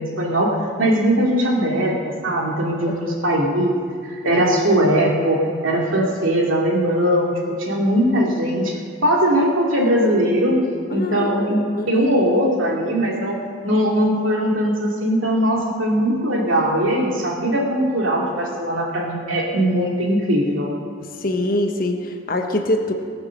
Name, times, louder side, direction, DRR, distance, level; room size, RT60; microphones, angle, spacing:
voice 1, 0.0-3.7 4.0-8.7 9.0-10.6 10.9-11.6 11.9-13.4 13.6-20.7, equal, 90° right, -2 dB, 2.5 m, -20 dB
voice 2, 2.9-3.4 10.9-11.3 11.8-12.1 21.0-22.9, left 1 dB, 45° left, 4 dB, 1.2 m, -24 dB
18.5 x 6.4 x 6.5 m, 2.2 s
head